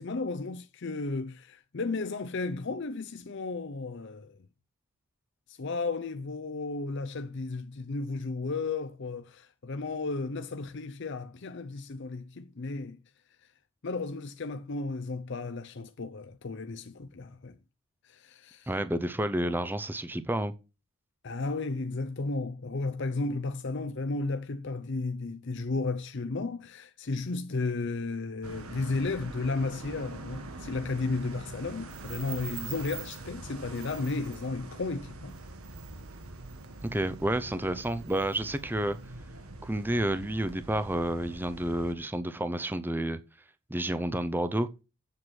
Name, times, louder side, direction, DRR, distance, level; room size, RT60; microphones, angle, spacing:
voice 1, 0.0-4.4 5.5-13.0 13.8-17.6 18.0-18.7 21.2-35.4, left 3 dB, 50° left, 0.6 m, -34 dB
voice 2, 18.7-20.5 36.8-39.0 39.6-43.2 43.7-44.7, right 1 dB, 10° right, 0.6 m, -30 dB
sound 1, 28.4-41.9, right 3 dB, 75° right, 1.5 m, -43 dB
8.0 x 7.6 x 6.3 m
head